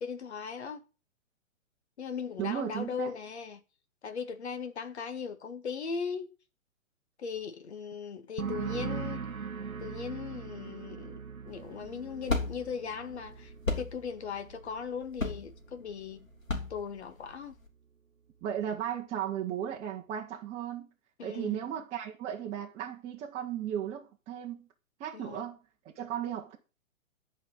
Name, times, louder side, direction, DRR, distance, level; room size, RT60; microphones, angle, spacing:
voice 1, 0.0-0.8 2.0-3.6 4.0-6.3 7.2-9.2 9.8-16.3 16.7-17.5 21.2-21.7 25.1-25.4, left 6 dB, 55° left, 1.9 m, -38 dB
voice 2, 2.4-3.1 18.4-20.9 21.2-24.7 25.0-25.6 26.0-26.6, right 10 dB, 15° right, 1.1 m, -35 dB
sound 1, 8.4-15.8 16.1-16.7, right 6 dB, 85° right, 0.9 m, -41 dB
sound 2, 11.5-17.7, left 3 dB, 70° left, 3.2 m, -35 dB
11.5 x 5.3 x 8.0 m
figure-of-eight pair, 120°, 41 cm